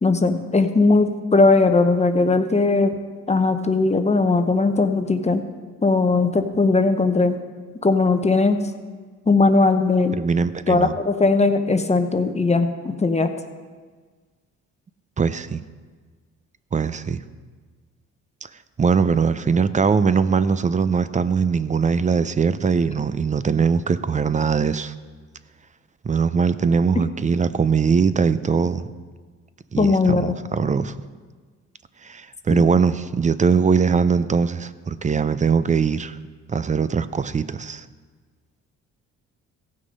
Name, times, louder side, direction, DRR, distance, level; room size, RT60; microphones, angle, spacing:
voice 1, 0.0-2.9 3.3-5.4 5.8-7.4 7.8-8.6 9.3-10.2 10.7-13.3 29.8-30.4 32.5-32.6, left 3 dB, 20° left, 7 dB, 0.8 m, -19 dB
voice 2, 10.2-10.9 15.2-15.6 16.7-17.2 18.4-18.5 18.8-24.9 26.0-28.8 29.7-30.9 32.0-36.2 36.5-37.9, right 5 dB, 25° right, 14 dB, 0.5 m, -21 dB
15.5 x 6.4 x 5.3 m, 1.5 s
cardioid pair, 90°, 30 cm